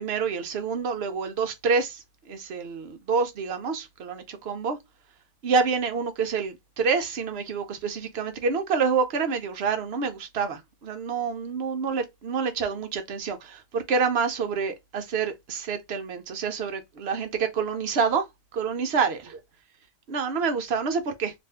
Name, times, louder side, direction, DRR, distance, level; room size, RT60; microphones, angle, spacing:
voice 1, 0.0-4.8 5.4-18.3 18.5-19.4 20.1-21.3, right 5 dB, 60° right, 0.8 m, -27 dB
2.6 x 2.5 x 3.3 m
omnidirectional pair, 1.3 m